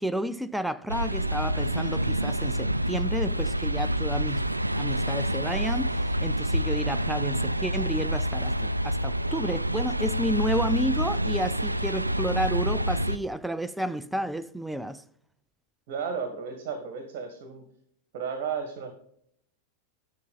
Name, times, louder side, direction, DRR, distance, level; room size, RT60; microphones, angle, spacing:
voice 1, 0.0-15.0, equal, 5° right, 0.4 m, -31 dB
sound 1, 0.9-13.2, equal, 85° right, 0.3 m, -27 dB
voice 2, 15.9-17.6 18.1-18.9, right 6 dB, 45° right, 1.6 m, -33 dB
10.5 x 5.7 x 5.4 m
figure-of-eight pair, 90°, 0 cm